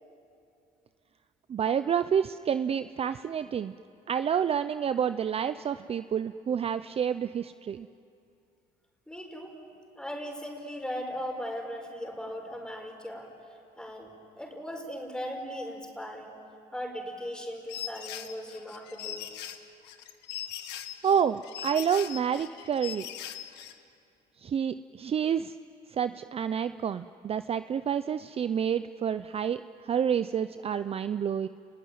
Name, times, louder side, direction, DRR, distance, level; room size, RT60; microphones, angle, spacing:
voice 1, 1.5-3.7 4.1-7.9 21.0-23.1 24.4-25.5 25.9-31.5, right 8 dB, 35° right, 12 dB, 0.5 m, -29 dB
voice 2, 9.1-9.6 10.0-13.3 13.8-14.1 14.4-16.4 16.7-19.3, equal, 5° left, 2 dB, 5.2 m, -38 dB
sound 1, 17.7-23.7, left 11 dB, 90° left, 1.6 m, -40 dB
30.0 x 21.0 x 9.4 m, 2.6 s
cardioid pair, 110°, 17 cm